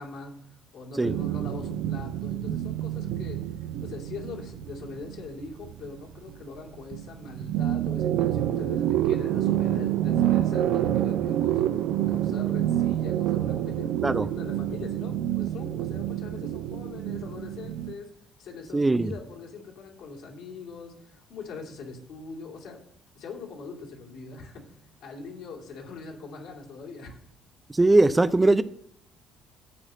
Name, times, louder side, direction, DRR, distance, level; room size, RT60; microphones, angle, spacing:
voice 1, 0.0-11.8 12.1-18.1 18.4-22.8 23.1-27.2, left 4 dB, 65° left, 2.8 m, -42 dB
sound 1, 1.0-6.6 6.9-17.9, right 12 dB, 65° right, 0.6 m, -28 dB
voice 2, 18.7-19.1 27.7-28.6, right 2 dB, 20° right, 0.6 m, -20 dB
13.0 x 4.9 x 7.5 m
hypercardioid pair, 50°, 0 cm